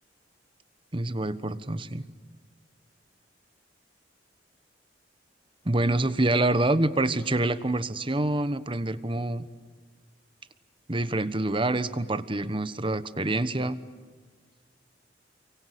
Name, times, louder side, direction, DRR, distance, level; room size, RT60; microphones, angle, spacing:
voice 1, 0.9-2.1 5.6-9.5 10.9-13.8, right 2 dB, 30° right, 13 dB, 1.2 m, -26 dB
29.0 x 24.0 x 8.4 m, 1.5 s
head